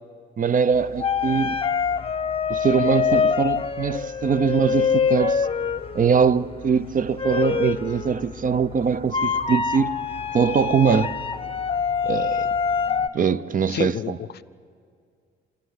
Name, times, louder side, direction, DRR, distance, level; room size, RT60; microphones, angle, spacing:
voice 1, 0.4-1.6 2.5-5.5 5.9-10.0 10.3-11.2 12.0-12.5 13.1-14.2, right 6 dB, 45° right, 0.8 m, -22 dB
sound 1, 0.7-13.1, left 6 dB, 30° left, 0.8 m, -25 dB
voice 2, 13.7-14.4, left 10 dB, 55° left, 0.5 m, -30 dB
28.0 x 12.0 x 9.7 m
cardioid pair, 90°, 20 cm